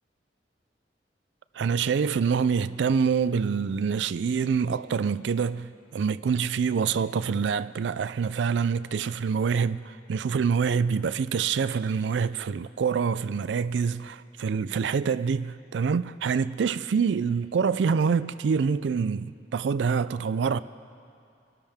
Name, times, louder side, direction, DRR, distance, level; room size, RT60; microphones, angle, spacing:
voice 1, 1.5-20.6, right 6 dB, 70° right, 0.4 m, -26 dB
26.0 x 12.5 x 3.5 m
head